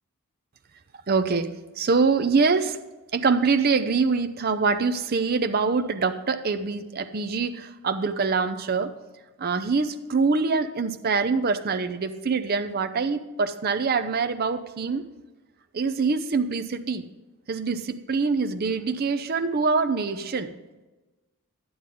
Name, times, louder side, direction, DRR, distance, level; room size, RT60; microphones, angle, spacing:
voice 1, 1.1-1.5 1.8-2.8 3.1-8.9 9.4-15.0 15.7-17.1 17.5-20.5, right 4 dB, 45° right, 9 dB, 0.6 m, -24 dB
11.5 x 9.5 x 3.7 m, 1.1 s
head